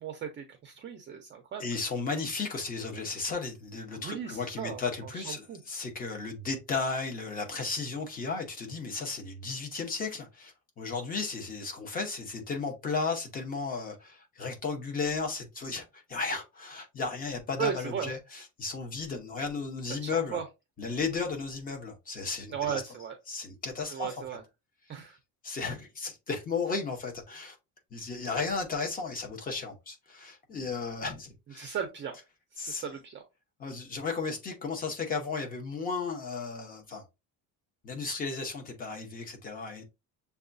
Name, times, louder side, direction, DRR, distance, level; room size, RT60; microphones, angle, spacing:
voice 1, 0.0-1.6 3.9-4.8 5.1-5.6 17.6-18.1 20.0-20.4 22.5-23.1 23.9-24.4 24.9-25.2 31.6-32.1 32.6-33.2, right 8 dB, 30° right, 0.5 m, -36 dB
voice 2, 1.6-20.4 20.8-22.8 23.3-24.2 25.4-27.6 27.9-31.7 32.6-32.9 33.6-37.0 37.8-39.8, left 4 dB, 20° left, 0.8 m, -34 dB
6.9 x 2.3 x 2.5 m
cardioid pair, 170°, 39 cm